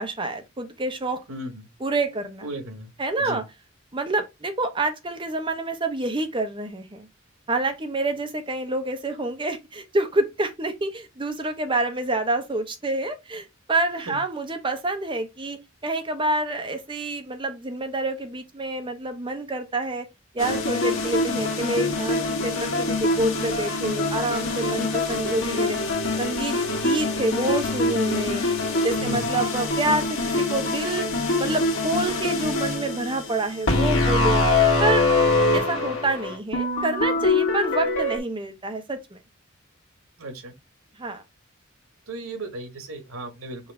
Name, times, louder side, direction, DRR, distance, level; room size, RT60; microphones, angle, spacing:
voice 1, 0.0-1.2 1.8-2.5 3.0-3.4 3.9-7.1 7.5-20.1 20.3-25.8 26.2-28.4 28.8-30.1 30.4-31.1 31.4-34.4 34.8-35.0 35.5-39.2 41.0-41.2, right 2 dB, 25° right, 0.8 m, -27 dB
voice 2, 1.3-1.6 2.4-2.9 3.2-3.4 14.1-14.2 29.0-29.3 40.2-40.5 42.1-43.7, right 1 dB, 90° right, 1.2 m, -36 dB
sound 1, 20.4-38.2, left 2 dB, 80° left, 1.5 m, -24 dB
5.6 x 2.7 x 3.4 m
head